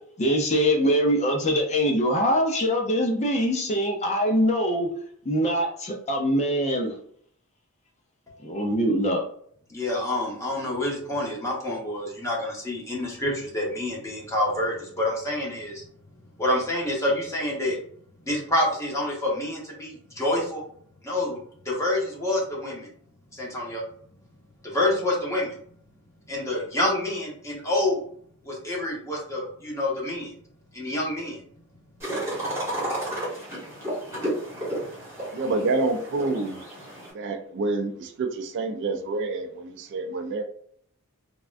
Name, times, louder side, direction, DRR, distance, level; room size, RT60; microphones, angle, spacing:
voice 1, 0.2-4.9 5.3-6.9 8.4-9.2, equal, 30° left, 0.4 m, -23 dB
voice 2, 9.7-15.9 16.4-17.8 18.3-20.6 21.0-22.9 23.3-23.8 24.6-25.5 26.3-28.0 28.4-30.3 30.7-31.4, left 1 dB, 15° left, 0.9 m, -27 dB
sound 1, 32.0-37.1, right 1 dB, 10° right, 1.0 m, -32 dB
voice 3, 35.3-36.6 37.1-40.4, right 3 dB, 55° right, 0.4 m, -28 dB
3.4 x 2.2 x 2.4 m
head